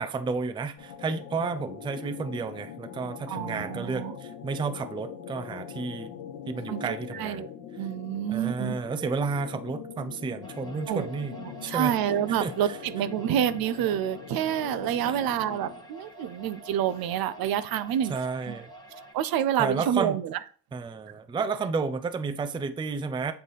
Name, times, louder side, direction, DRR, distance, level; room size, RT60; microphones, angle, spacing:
voice 1, 0.0-6.1 6.5-7.4 8.3-11.4 11.6-12.0 12.3-12.8 15.0-15.3 18.1-18.7 19.6-20.2 20.7-23.3, right 4 dB, 10° right, 0.5 m, -32 dB
sound 1, 0.8-15.9, left 8 dB, 70° left, 1.4 m, -42 dB
voice 2, 3.3-4.2 6.7-7.5 7.8-8.8 10.9-11.1 11.4-18.1 18.5-18.6 19.1-20.4, right 10 dB, 50° right, 0.7 m, -28 dB
sound 2, 10.4-19.1, right 1 dB, 10° left, 1.7 m, -48 dB
7.5 x 3.4 x 4.0 m
hypercardioid pair, 75°, 46 cm